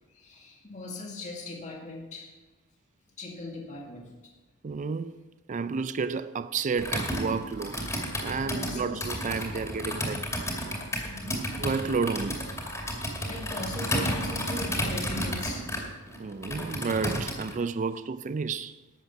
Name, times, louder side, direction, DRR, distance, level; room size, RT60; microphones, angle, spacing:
voice 1, 0.1-2.3 3.2-4.1 8.5-9.1 11.0-11.4 13.2-15.7, left 2 dB, 35° left, 2.0 m, -39 dB
voice 2, 4.6-5.1 5.5-7.8 8.2-10.2 11.6-12.5 16.2-18.8, right 5 dB, 35° right, 0.4 m, -31 dB
Computer keyboard, 6.8-17.6, equal, 15° left, 2.4 m, -32 dB
12.0 x 8.1 x 5.8 m
head